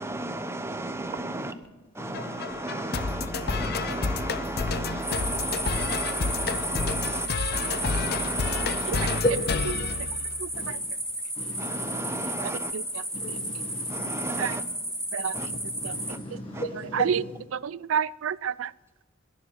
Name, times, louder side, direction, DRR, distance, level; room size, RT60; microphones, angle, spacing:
voice 1, 0.0-1.6 1.9-9.2 11.6-12.7 13.9-14.6 15.3-15.5 16.1-16.2 16.5-16.6, right 2 dB, 15° right, 10 dB, 0.9 m, -34 dB
voice 2, 2.0-2.4 2.7-2.9 3.5-4.3 7.7-8.1 9.2-10.0 10.5-10.8 11.4-12.2 13.1-14.6 15.3-17.4, left 1 dB, 25° left, 1 dB, 1.6 m, -35 dB
sound 1, 2.1-10.7, left 4 dB, 55° left, 0.6 m, -31 dB
sound 2, 5.0-16.1, equal, 5° left, 3.9 m, -33 dB
voice 3, 17.6-18.7, right 7 dB, 80° right, 20 dB, 0.4 m, -28 dB
21.5 x 7.3 x 7.9 m, 1.1 s
head